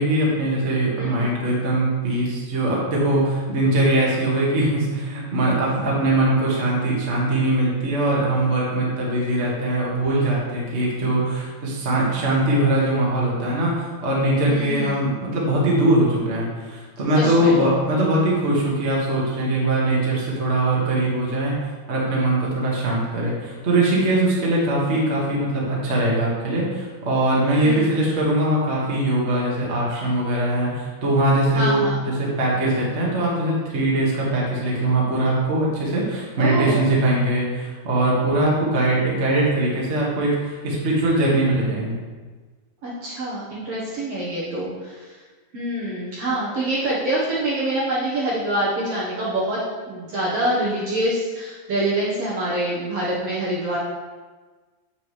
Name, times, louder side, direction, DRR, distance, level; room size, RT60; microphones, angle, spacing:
voice 1, 0.0-21.5 21.9-42.0, right 1 dB, 40° right, -5 dB, 1.0 m, -21 dB
voice 2, 1.0-1.3 14.5-15.0 17.2-17.6 27.6-27.9 31.5-31.9 36.4-36.8 42.8-45.2 45.5-53.8, right 1 dB, 60° right, -7 dB, 1.7 m, -25 dB
7.7 x 7.3 x 3.2 m, 1.4 s
omnidirectional pair, 4.1 m